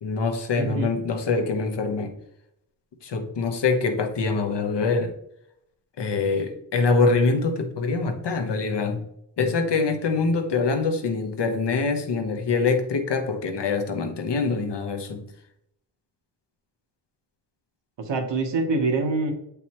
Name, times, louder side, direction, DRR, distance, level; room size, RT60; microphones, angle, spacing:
voice 1, 0.0-2.1 3.0-5.1 6.0-9.0 9.4-15.2, left 4 dB, 75° left, 6 dB, 1.2 m, -24 dB
voice 2, 0.6-0.9 18.0-19.3, right 3 dB, 90° right, 4 dB, 1.4 m, -25 dB
8.6 x 5.3 x 3.0 m, 0.75 s
wide cardioid pair, 100°, 42 cm